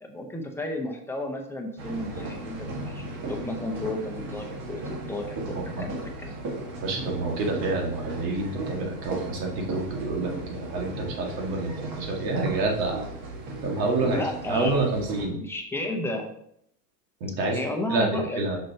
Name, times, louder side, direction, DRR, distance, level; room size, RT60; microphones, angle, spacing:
voice 1, 0.0-3.0 3.3-6.4 14.0-14.9 15.3-16.3 17.5-18.4, left 1 dB, 5° left, 2 dB, 0.8 m, -32 dB
sound 1, 1.8-15.2, right 2 dB, 40° right, 1.8 m, -36 dB
voice 2, 5.5-5.8 6.8-13.0 13.6-14.2 14.5-15.4 17.2-17.6 17.9-18.6, right 3 dB, 80° right, 0 dB, 2.1 m, -28 dB
6.1 x 5.9 x 2.9 m, 0.71 s
supercardioid pair, 130°, 49 cm